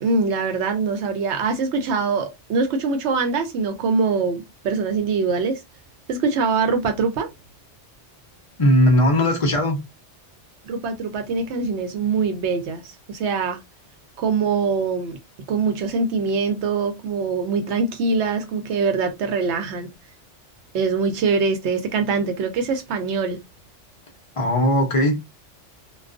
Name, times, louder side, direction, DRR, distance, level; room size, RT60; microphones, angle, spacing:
voice 1, 0.0-5.6 6.1-7.3 10.6-13.6 14.2-15.2 15.5-19.9 20.7-23.4, right 4 dB, 70° right, 0.8 m, -23 dB
voice 2, 8.6-9.8 24.4-25.2, left 1 dB, 40° left, 0.5 m, -18 dB
2.3 x 2.2 x 2.4 m
omnidirectional pair, 1.2 m